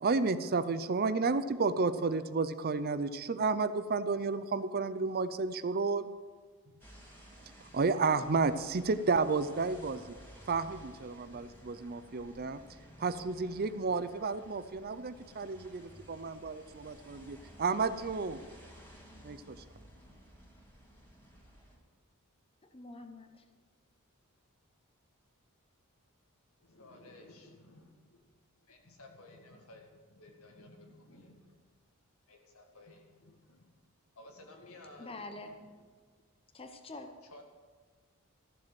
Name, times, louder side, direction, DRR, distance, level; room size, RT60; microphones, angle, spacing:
voice 1, 0.0-6.1 7.6-10.2 10.5-12.6 13.0-18.4 19.2-19.6, right 4 dB, 45° right, 13 dB, 0.5 m, -32 dB
sound 1, 6.8-21.8, equal, 10° left, 2.7 m, -55 dB
voice 2, 22.7-23.4 35.0-35.6 36.5-37.1, left 2 dB, 25° left, 6 dB, 0.9 m, -45 dB
voice 3, 26.6-28.3 28.7-31.6 32.3-33.7 34.2-35.7 37.2-37.4, left 2 dB, 80° left, 3 dB, 2.0 m, -55 dB
14.0 x 7.5 x 7.6 m, 1.5 s
head